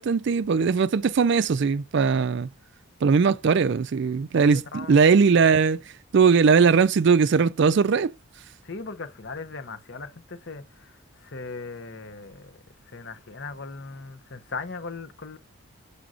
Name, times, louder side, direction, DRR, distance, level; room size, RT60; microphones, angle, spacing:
voice 1, 0.0-2.5 3.0-5.8 6.1-8.1, right 5 dB, 55° right, 0.4 m, -20 dB
voice 2, 4.3-5.0 8.6-12.6 12.9-15.4, left 4 dB, 55° left, 0.9 m, -38 dB
6.9 x 6.2 x 2.5 m
head